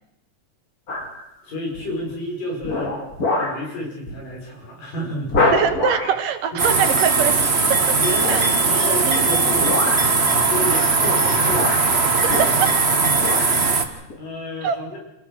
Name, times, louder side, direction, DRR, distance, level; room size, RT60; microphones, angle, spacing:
sound 1, 0.9-1.2 1.7-2.1 2.6-3.7 4.1-4.3 4.6-4.7 5.3-6.2 8.1-8.6 9.5-10.2 11.1-11.2 11.5-12.9 13.1-13.6 14.1-14.2, left 2 dB, 30° left, 2.4 m, -25 dB
voice 1, 1.4-3.0 3.3-5.5 6.5-6.6 7.6-7.7 8.0-9.7 10.0-12.0 13.0-15.0, equal, 80° left, -1 dB, 7.5 m, -31 dB
voice 2, 5.5-7.4 8.3-8.4 12.2-12.7 14.6-14.8, right 8 dB, 75° right, 8 dB, 2.9 m, -22 dB
sound 2, 6.6-13.8, right 4 dB, 35° right, 1.1 m, -19 dB
27.5 x 16.5 x 6.5 m, 0.84 s
omnidirectional pair, 3.8 m